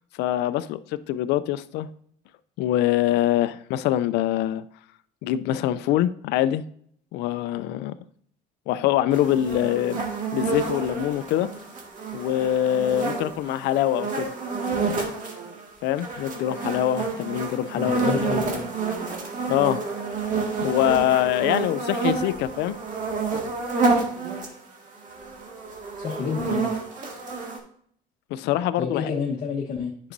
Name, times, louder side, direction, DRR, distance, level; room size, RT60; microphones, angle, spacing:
voice 1, 0.2-1.9 2.6-4.7 5.2-6.6 7.1-7.9 8.7-10.0 10.3-11.5 12.1-14.3 15.8-18.2 19.5-19.8 20.6-22.8 28.3-29.1, left 12 dB, 90° left, 0.5 m, -24 dB
sound 1, 9.1-15.6 16.0-24.6 25.0-27.6, right 4 dB, 50° right, 1.9 m, -29 dB
voice 2, 17.7-18.6 26.0-26.8 28.7-29.9, left 5 dB, 50° left, 1.1 m, -29 dB
9.7 x 6.4 x 2.7 m
cardioid pair, 110°, 17 cm